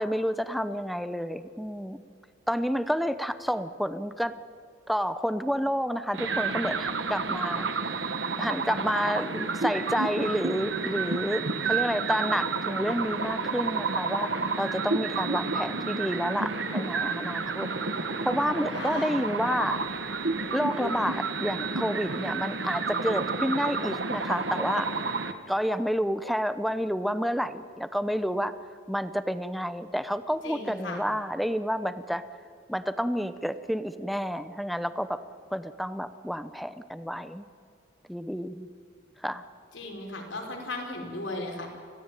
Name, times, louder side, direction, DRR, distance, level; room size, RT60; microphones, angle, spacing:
voice 1, 0.0-2.0 2.5-4.3 4.9-7.7 8.4-14.3 14.6-17.7 18.0-19.8 20.5-24.9 25.5-28.5 28.9-32.2 32.7-35.2 35.5-37.5 38.1-38.7 39.2-39.4, equal, ahead, 12 dB, 0.8 m, -29 dB
sound 1, 6.1-25.3, right 4 dB, 70° right, 1.7 m, -30 dB
voice 2, 18.7-19.2 30.4-31.1 39.7-41.7, left 2 dB, 85° left, 1 dB, 5.3 m, -36 dB
26.0 x 17.0 x 9.1 m, 2.4 s
head